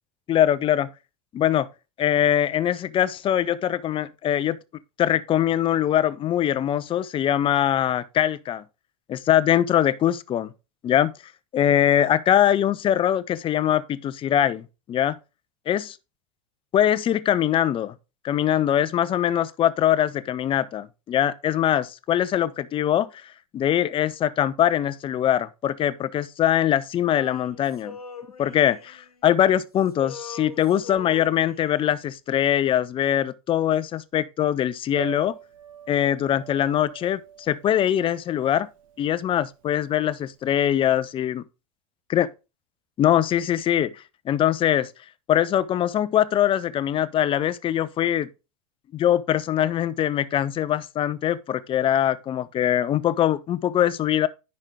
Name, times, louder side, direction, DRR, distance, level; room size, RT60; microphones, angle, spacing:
voice 1, 0.3-0.9 1.3-1.7 2.0-4.6 5.0-8.6 9.1-10.5 10.8-11.1 11.5-15.1 15.7-16.0 16.7-17.9 18.2-23.1 23.5-28.0 28.4-35.4 35.9-38.7 39.0-41.4 42.1-42.3 43.0-44.9 45.3-48.3 48.9-54.3, left 11 dB, 30° left, 0.6 m, -22 dB
Male singing, 27.1-29.6 29.8-32.0, left 5 dB, 90° left, 1.1 m, -42 dB
Piano, 34.9-40.8, right 9 dB, 65° right, 1.3 m, -43 dB
9.9 x 5.3 x 3.6 m
hypercardioid pair, 90°, 18 cm